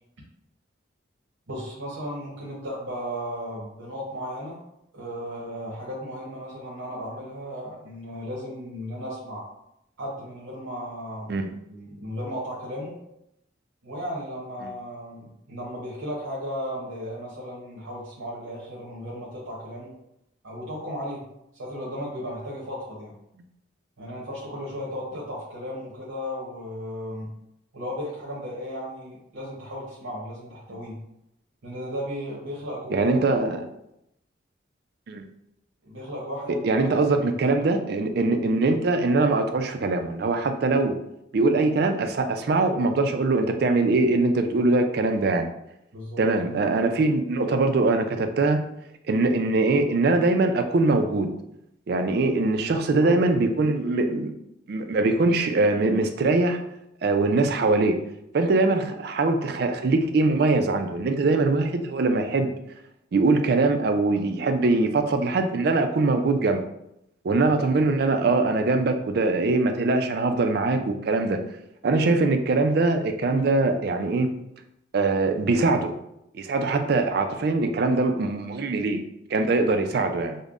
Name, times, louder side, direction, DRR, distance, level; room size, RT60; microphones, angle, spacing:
voice 1, 1.5-4.6 4.9-9.4 10.0-11.4 11.7-13.0 13.8-19.9 20.4-21.2 21.5-23.1 24.0-27.3 27.7-31.0 31.6-33.4 35.8-37.3 45.9-46.2 46.8-46.9 52.8-53.2, equal, 90° right, -5 dB, 0.8 m, -35 dB
voice 2, 32.9-33.6 35.1-35.2 36.6-40.9 41.3-45.5 46.2-48.6 49.1-51.3 51.9-54.3 54.7-56.6 57.0-58.0 58.3-62.5 63.1-66.6 67.2-71.4 71.8-74.3 74.9-75.9 76.3-79.0 79.3-80.4, right 3 dB, 55° right, 6 dB, 0.3 m, -22 dB
5.2 x 2.1 x 2.4 m, 0.81 s
head